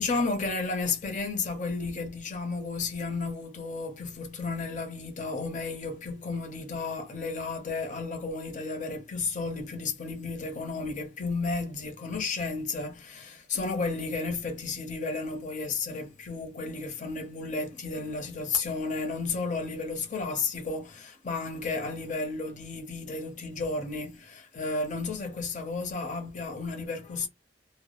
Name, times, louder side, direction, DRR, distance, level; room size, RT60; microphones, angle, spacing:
voice 1, 0.0-27.3, left 3 dB, 45° left, 0.7 m, -33 dB
2.1 x 2.0 x 2.9 m
head